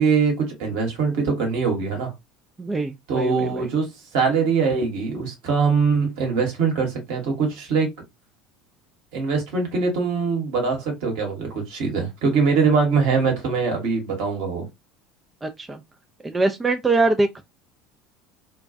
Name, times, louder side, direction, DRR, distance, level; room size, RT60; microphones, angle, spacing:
voice 1, 0.0-2.1 3.1-7.9 9.1-14.7, right 5 dB, 60° right, 1.1 m, -22 dB
voice 2, 2.6-3.7 15.4-15.8 16.2-17.4, right 3 dB, 20° right, 0.3 m, -23 dB
2.2 x 2.2 x 2.5 m
figure-of-eight pair, 65°, 0 cm